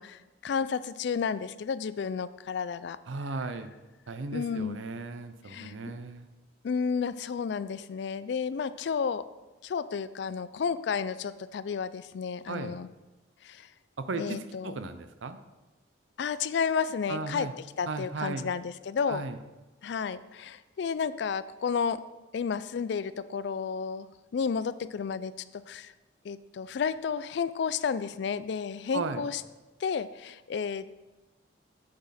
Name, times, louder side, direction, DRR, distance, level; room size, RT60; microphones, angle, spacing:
voice 1, 0.0-3.0 4.3-4.8 5.5-5.7 6.6-9.3 9.6-12.9 13.4-13.7 14.2-14.8 16.2-17.5 17.8-19.2 19.8-22.0 22.3-24.1 24.3-25.9 26.2-29.4 29.8-30.9, left 6 dB, 60° left, 15 dB, 0.3 m, -32 dB
voice 2, 3.1-3.7 4.1-6.3 12.5-12.8 14.0-15.4 17.1-17.5 17.9-18.5 19.1-19.4 28.9-29.2, right 3 dB, 80° right, 10 dB, 0.6 m, -36 dB
8.5 x 6.3 x 4.2 m, 1.2 s
head